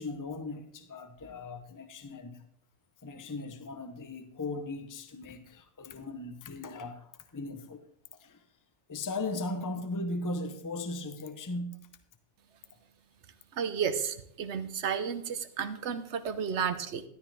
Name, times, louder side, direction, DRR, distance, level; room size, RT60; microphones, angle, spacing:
voice 1, 0.0-2.4 3.0-7.8 8.1-8.4 8.9-11.8, left 2 dB, 20° left, 0.7 m, -38 dB
voice 2, 13.5-17.0, right 7 dB, 65° right, 1.1 m, -32 dB
13.5 x 12.5 x 3.4 m
omnidirectional pair, 1.3 m